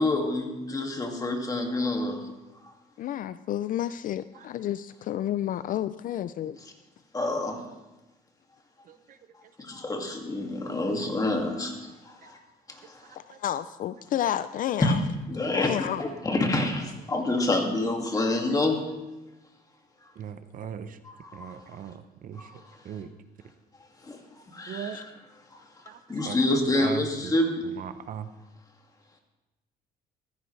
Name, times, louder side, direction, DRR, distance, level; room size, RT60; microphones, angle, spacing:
voice 1, 0.0-2.3 2.6-2.7 7.1-7.7 9.6-12.4 12.7-13.2 14.8-14.9 15.3-15.7 16.0-18.8 21.0-21.6 22.4-22.6 24.0-24.2 24.5-25.1 25.5-25.8 26.1-27.7, left 2 dB, 20° left, 2 dB, 2.2 m, -28 dB
voice 2, 3.0-6.6 13.1-15.0 15.5-16.0 24.9-25.0, left 11 dB, 55° left, 14 dB, 0.4 m, -30 dB
voice 3, 8.9-9.2 13.3-13.4 20.2-21.0 21.3-22.5 22.8-23.1 24.7-25.0 25.9-26.4 26.8-27.3 27.8-28.3, right 8 dB, 55° right, 11 dB, 0.8 m, -39 dB
15.0 x 14.0 x 3.3 m, 1.0 s
cardioid pair, 110°, 17 cm